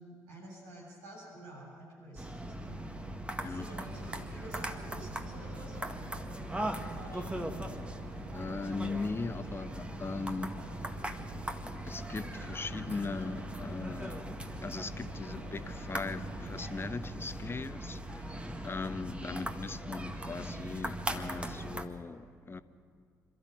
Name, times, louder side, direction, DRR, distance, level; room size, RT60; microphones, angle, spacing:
voice 1, 0.0-2.9 3.4-6.0 6.6-7.8 19.2-19.3, right 1 dB, 70° right, -4 dB, 7.5 m, -50 dB
sound 1, 2.2-21.9, right 1 dB, 15° right, 1.8 m, -40 dB
sound 2, 3.9-16.8, equal, 85° right, 2.6 m, -52 dB
voice 2, 8.3-10.7 11.8-14.2 14.6-22.6, left 4 dB, 30° left, 12 dB, 1.1 m, -39 dB
27.5 x 13.0 x 9.1 m, 2.4 s
figure-of-eight pair, 40°, 8 cm